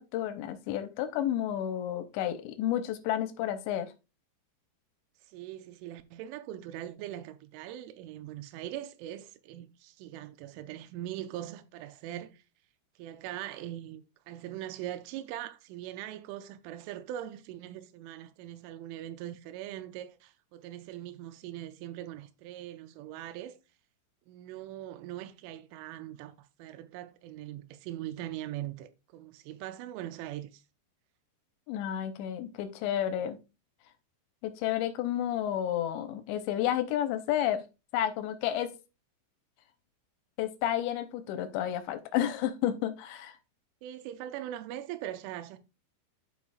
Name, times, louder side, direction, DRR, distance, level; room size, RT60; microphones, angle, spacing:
voice 1, 0.0-3.9 31.7-33.4 34.4-37.6 37.9-38.7 40.4-43.4, left 11 dB, 85° left, 2.7 m, -31 dB
voice 2, 5.2-12.4 13.0-23.6 24.3-30.6 43.8-45.6, right 12 dB, 85° right, 3.1 m, -41 dB
12.0 x 4.7 x 2.4 m
omnidirectional pair, 5.4 m